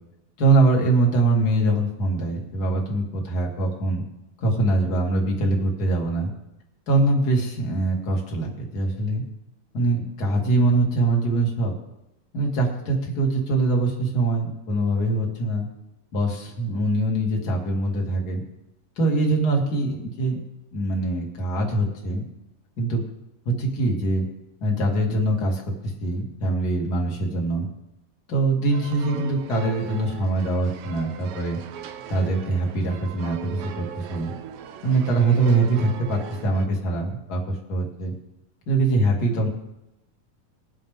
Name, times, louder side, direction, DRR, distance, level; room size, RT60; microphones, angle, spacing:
voice 1, 0.4-4.0 4.4-6.3 6.9-9.3 9.7-11.7 12.3-15.7 16.1-18.4 19.0-20.4 20.7-22.2 22.8-23.0 23.5-24.3 24.6-25.6 26.0-27.7 28.3-31.6 32.1-34.3 34.8-38.1 38.7-39.5, right 2 dB, 35° left, -1 dB, 2.0 m, -23 dB
sound 1, 28.7-36.7, right 8 dB, 80° right, 2.5 m, -39 dB
21.0 x 7.5 x 3.6 m, 0.90 s
omnidirectional pair, 4.1 m